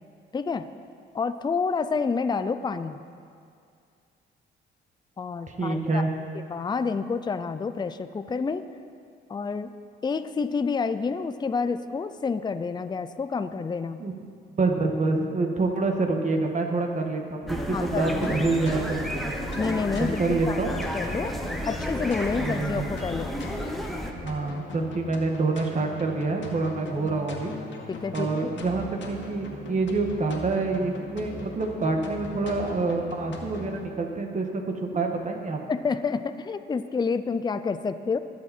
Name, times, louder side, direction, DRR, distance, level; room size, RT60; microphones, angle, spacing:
voice 1, 0.3-0.7 1.1-3.0 5.2-6.1 6.3-8.6 9.3-9.7 10.0-14.0 17.7-18.5 19.6-21.3 21.6-23.3 26.8-27.1 27.9-28.5 35.7-38.2, left 5 dB, 20° left, 10 dB, 0.5 m, -29 dB
voice 2, 5.5-6.1 14.0-14.1 14.6-19.3 19.9-20.8 22.4-22.9 24.2-27.5 28.1-34.5 34.8-35.6, right 3 dB, 40° right, 3 dB, 1.9 m, -27 dB
sound 1, 17.4-33.8, left 3 dB, 65° left, 2.1 m, -40 dB
sound 2, 17.5-24.1, equal, ahead, 1.3 m, -32 dB
21.5 x 7.4 x 4.5 m, 2.3 s
cardioid pair, 90°, 20 cm